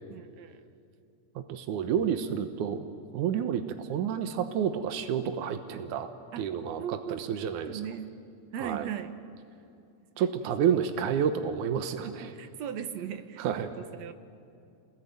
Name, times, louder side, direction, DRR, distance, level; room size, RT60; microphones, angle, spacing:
voice 1, 0.1-0.6 6.3-6.4 6.8-7.2 7.7-8.1 8.5-9.1 12.0-14.1, right 9 dB, 70° right, 10 dB, 2.2 m, -38 dB
voice 2, 1.4-2.8 3.1-6.1 6.4-7.8 8.6-8.9 10.2-12.3 13.4-13.7, right 8 dB, 85° right, 8 dB, 2.6 m, -30 dB
27.5 x 21.0 x 9.4 m, 2.5 s
omnidirectional pair, 3.4 m